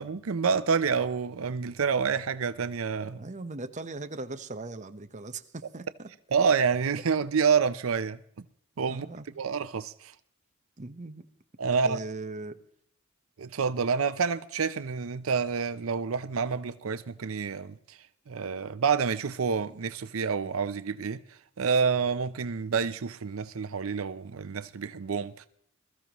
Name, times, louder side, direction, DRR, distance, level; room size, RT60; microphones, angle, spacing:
voice 1, 0.0-3.2 6.3-8.2 8.8-9.1 9.4-10.1 11.6-12.0 13.4-18.0 18.3-21.2 21.6-25.5, right 5 dB, 90° right, 0.6 m, -28 dB
voice 2, 3.2-6.1 8.9-9.3 10.8-11.3 11.8-12.6, right 3 dB, 35° right, 1.0 m, -39 dB
21.5 x 14.0 x 3.0 m
head